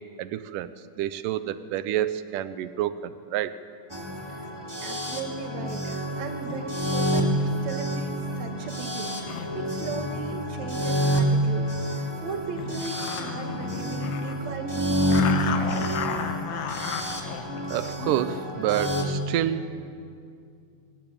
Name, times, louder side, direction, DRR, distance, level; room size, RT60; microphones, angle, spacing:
voice 1, 0.2-0.7 1.0-3.6 17.7-19.7, right 11 dB, 75° right, 13 dB, 2.3 m, -28 dB
sound 1, 3.9-19.0, equal, 10° right, 2.3 m, -28 dB
voice 2, 4.8-15.6, right 4 dB, 55° right, 4 dB, 3.1 m, -37 dB
sound 2, 6.5-6.8 7.4-11.6 12.1-12.2 12.6-14.5 15.1-18.3, left 7 dB, 85° left, 3.1 m, -35 dB
24.0 x 19.5 x 8.8 m, 2.4 s
omnidirectional pair, 4.0 m